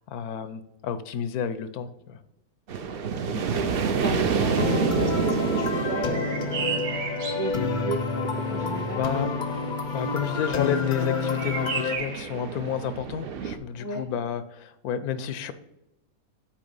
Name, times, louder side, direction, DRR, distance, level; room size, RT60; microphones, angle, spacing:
voice 1, 0.1-2.2 8.6-9.4 9.9-15.5, left 8 dB, 90° left, 12 dB, 1.1 m, -31 dB
sound 1, 2.7-13.6, right 6 dB, 55° right, 0.6 m, -30 dB
voice 2, 3.3-6.9 7.3-8.0 8.5-9.1 13.8-14.0, right 1 dB, 15° right, 3 dB, 0.7 m, -35 dB
sound 2, 4.6-12.0, left 5 dB, 55° left, 0.5 m, -29 dB
sound 3, 6.1-7.6 11.4-12.3, right 5 dB, 85° right, 1.5 m, -32 dB
8.5 x 3.0 x 5.4 m, 0.92 s
omnidirectional pair, 1.5 m